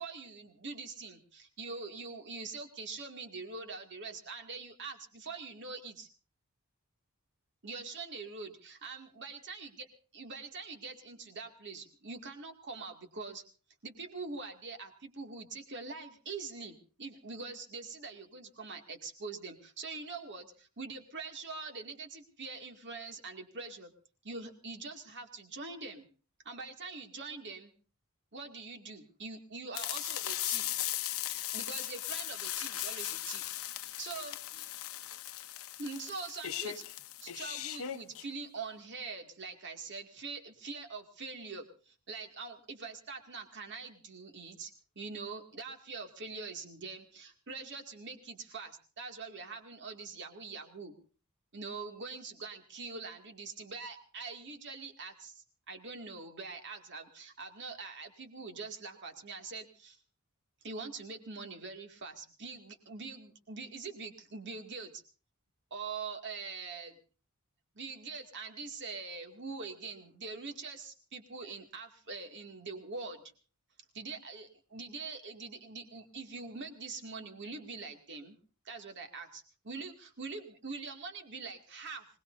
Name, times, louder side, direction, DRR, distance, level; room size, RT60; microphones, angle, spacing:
voice 1, 0.0-6.1 7.6-9.9 10.1-13.4 13.8-23.9 24.2-26.1 26.4-27.7 28.3-30.8 31.5-33.5 33.8-34.7 35.8-36.8 37.2-50.9 51.5-60.0 60.6-65.0 65.7-66.9 67.7-73.2 73.9-78.4 78.6-82.1, right 4 dB, 55° right, 4 dB, 2.3 m, -44 dB
sound 1, 29.7-38.2, left 13 dB, 65° left, 0.8 m, -38 dB
25.0 x 19.5 x 2.7 m, 0.39 s
head